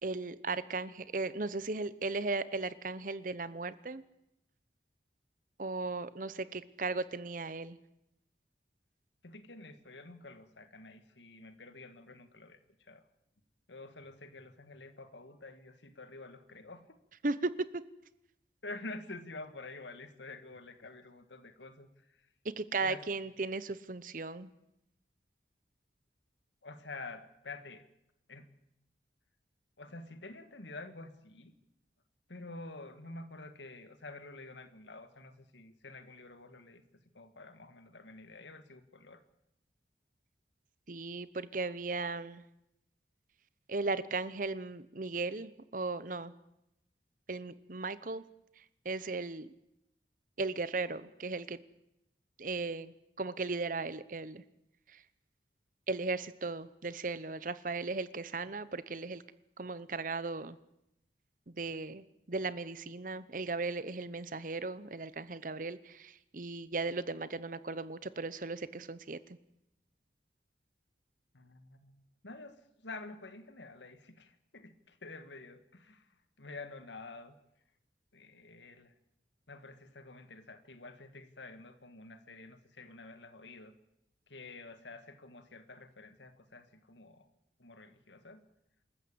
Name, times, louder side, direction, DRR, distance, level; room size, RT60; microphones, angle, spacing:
voice 1, 0.0-4.0 5.6-7.8 17.2-17.7 22.6-24.5 40.9-42.4 43.7-46.3 47.3-48.2 48.8-49.5 50.4-51.6 52.4-54.4 55.9-59.2 59.6-60.6 61.5-69.2, right 3 dB, 45° right, 16 dB, 0.9 m, -36 dB
voice 2, 9.2-13.0 13.7-17.0 18.6-22.3 22.8-23.0 26.6-27.9 28.3-28.5 29.8-31.5 32.3-36.8 37.1-39.2 71.3-77.4 78.1-78.9 79.5-83.7 84.3-87.3 87.6-88.4, left 2 dB, 85° left, 10 dB, 1.9 m, -49 dB
26.0 x 14.0 x 8.6 m, 0.85 s
head